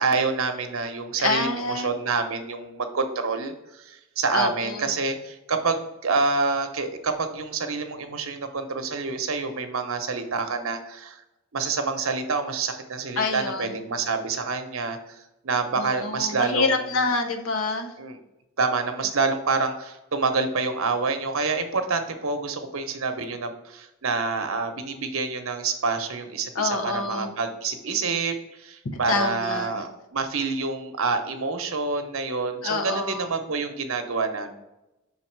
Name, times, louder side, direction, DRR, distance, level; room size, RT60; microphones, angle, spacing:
voice 1, 0.0-3.5 3.9-11.2 11.5-15.0 15.4-16.8 18.0-18.2 18.6-28.4 28.6-34.5, right 4 dB, 75° right, 7 dB, 0.8 m, -27 dB
voice 2, 1.2-1.9 4.3-4.8 13.2-13.7 15.8-17.9 26.5-27.3 28.9-29.8 32.6-33.3, left 3 dB, 80° left, 6 dB, 0.8 m, -27 dB
5.8 x 4.0 x 4.6 m, 0.94 s
head